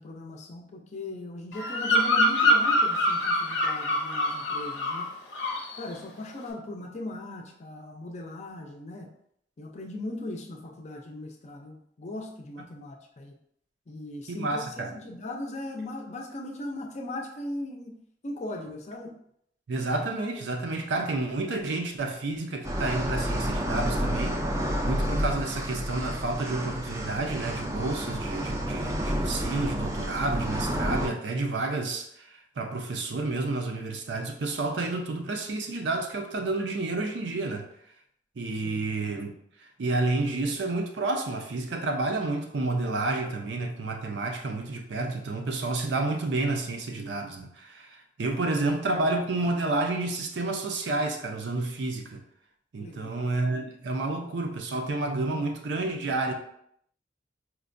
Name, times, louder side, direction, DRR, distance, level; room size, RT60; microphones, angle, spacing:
voice 1, 0.0-5.1 5.8-9.1 9.6-13.3 13.9-18.0 18.2-19.2 38.6-38.7 52.8-53.2, left 1 dB, 40° left, 2 dB, 0.5 m, -38 dB
Bird vocalization bird call bird song, 1.5-5.1 5.3-5.8, left 1 dB, 85° left, 0.6 m, -24 dB
voice 2, 14.3-14.9 19.7-24.4 24.9-37.6 38.4-39.3 39.8-52.2 52.7-56.3, right 2 dB, 70° right, 3 dB, 0.5 m, -30 dB
sound 1, 22.6-31.1, equal, 15° right, 0.4 m, -30 dB
4.4 x 2.2 x 2.5 m, 0.70 s
head